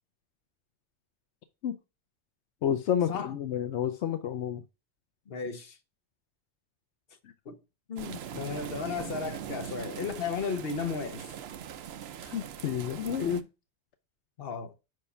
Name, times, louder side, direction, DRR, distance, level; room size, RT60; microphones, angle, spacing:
voice 1, 2.6-4.6 7.2-7.3 12.2-13.5, left 9 dB, 85° left, 1.0 m, -30 dB
voice 2, 5.3-5.8 7.4-7.6 7.9-11.3 14.4-14.7, left 5 dB, 60° left, 1.2 m, -34 dB
sound 1, 8.0-13.4, right 9 dB, 70° right, 0.8 m, -41 dB
5.5 x 4.9 x 5.6 m
omnidirectional pair, 1.1 m